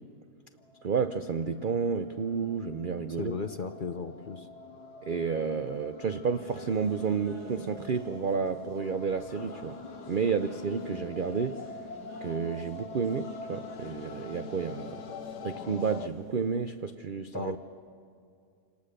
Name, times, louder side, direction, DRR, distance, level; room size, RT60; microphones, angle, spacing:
sound 1, 0.6-16.1, left 4 dB, 85° left, 1.5 m, -45 dB
voice 1, 0.8-3.3 5.0-9.8 10.1-11.7 12.2-15.0 15.4-17.5, right 6 dB, 70° right, 9 dB, 0.5 m, -31 dB
voice 2, 3.2-4.5 17.3-17.6, left 4 dB, 45° left, 7 dB, 0.7 m, -35 dB
sound 2, 6.3-16.8, equal, 20° left, 6.4 m, -50 dB
27.5 x 18.5 x 6.6 m, 2.3 s
omnidirectional pair, 1.7 m